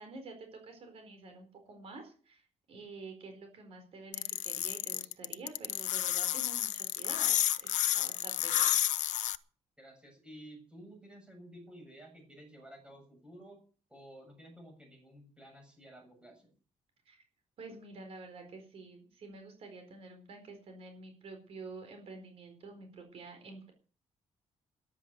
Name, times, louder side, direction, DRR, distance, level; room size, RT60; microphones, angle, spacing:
voice 1, 0.0-8.8 17.0-17.2 17.6-23.7, right 3 dB, 55° right, 6 dB, 4.4 m, -49 dB
sound 1, 4.1-9.4, left 13 dB, 85° left, 0.8 m, -30 dB
voice 2, 9.8-13.6 13.9-16.5, right 1 dB, 10° right, 3 dB, 7.1 m, -53 dB
14.0 x 11.5 x 6.8 m, 0.40 s
cardioid pair, 160°, 12 cm